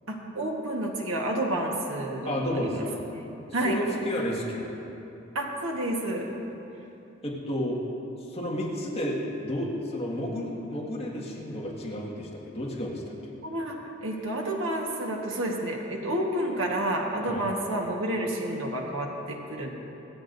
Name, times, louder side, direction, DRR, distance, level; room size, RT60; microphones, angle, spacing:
voice 1, 0.1-3.3 3.5-3.8 5.3-6.3 13.4-19.7, right 1 dB, 80° right, 0 dB, 1.4 m, -30 dB
voice 2, 2.3-3.1 3.6-4.8 7.2-7.8 8.2-13.3 17.2-17.4, equal, 30° left, -5 dB, 1.8 m, -32 dB
25.5 x 8.5 x 2.6 m, 3.0 s
head